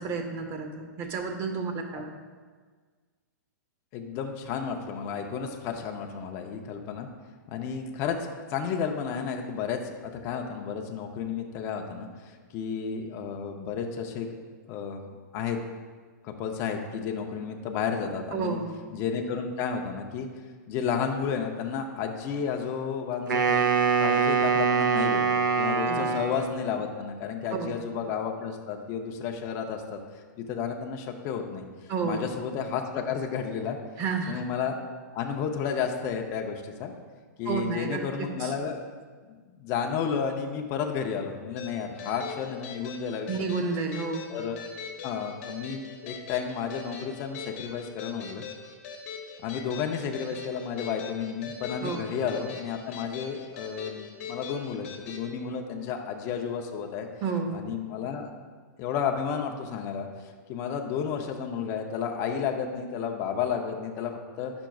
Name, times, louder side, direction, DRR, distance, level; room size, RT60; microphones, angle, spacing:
voice 1, 0.0-2.1 18.3-19.0 25.9-26.1 27.5-27.8 31.9-32.3 34.0-34.4 37.4-38.5 43.3-44.3 51.8-52.1 57.2-57.7, right 4 dB, 25° right, 5 dB, 0.7 m, -31 dB
voice 2, 3.9-7.1 7.5-14.4 14.7-15.0 15.3-15.6 16.2-18.6 18.9-20.3 20.7-25.2 25.6-30.0 30.4-31.6 32.0-33.8 34.3-34.7 35.1-36.9 37.4-38.8 39.3-43.3 44.3-44.6 45.0-48.4 49.4-57.1 57.5-58.3 58.8-60.1 60.5-64.5, left 7 dB, 25° left, 3 dB, 0.5 m, -32 dB
Wind instrument woodwind instrument, 23.3-26.8, right 5 dB, 90° right, 0.9 m, -24 dB
sound 1, 41.6-55.2, left 5 dB, 45° left, 1.1 m, -41 dB
10.0 x 6.0 x 2.3 m, 1.5 s
hypercardioid pair, 160°, 10 cm